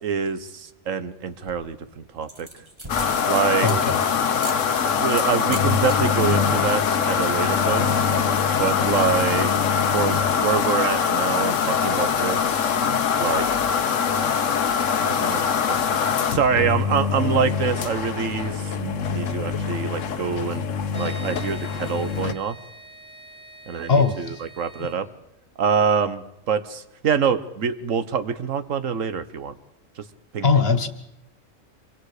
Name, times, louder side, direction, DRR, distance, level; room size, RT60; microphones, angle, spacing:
voice 1, 0.0-2.5 3.3-3.7 4.9-8.1 8.6-9.5 9.9-12.8 13.2-13.4 15.0-15.8 16.3-20.6 20.9-22.6 23.7-25.1 25.6-29.5 30.0-30.1 30.3-30.5, right 6 dB, 85° right, 11 dB, 1.5 m, -25 dB
sound 1, 1.3-1.8 2.2-4.0 4.4-4.6 5.3-6.0 6.3-6.6 6.8-6.9 7.1-7.6, right 1 dB, 20° right, 2.0 m, -39 dB
sound 2, 2.9-22.3, left 6 dB, 80° left, 1.3 m, -23 dB
voice 2, 3.6-4.0 23.9-24.4 30.4-30.9, left 4 dB, 50° left, 10 dB, 1.7 m, -20 dB
sound 3, 20.9-25.0, right 3 dB, 65° right, 5.8 m, -45 dB
26.0 x 24.0 x 5.0 m, 0.82 s
omnidirectional pair, 1.3 m